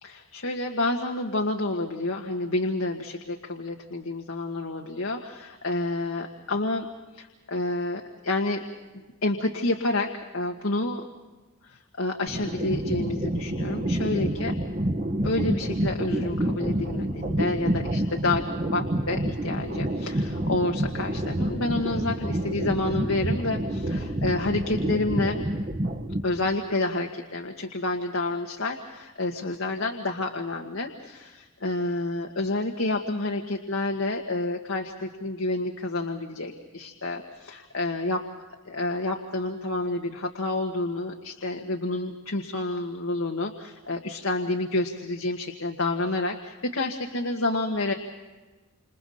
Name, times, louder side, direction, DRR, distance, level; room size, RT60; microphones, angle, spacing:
voice 1, 0.0-6.9 7.1-8.7 9.2-11.1 11.6-14.6 15.2-18.4 18.7-25.5 26.2-38.3 38.7-47.9, left 2 dB, 85° left, 2 dB, 1.9 m, -29 dB
sound 1, 12.3-26.5, right 1 dB, 45° right, 1.8 m, -28 dB
30.0 x 28.0 x 4.3 m, 1.2 s
head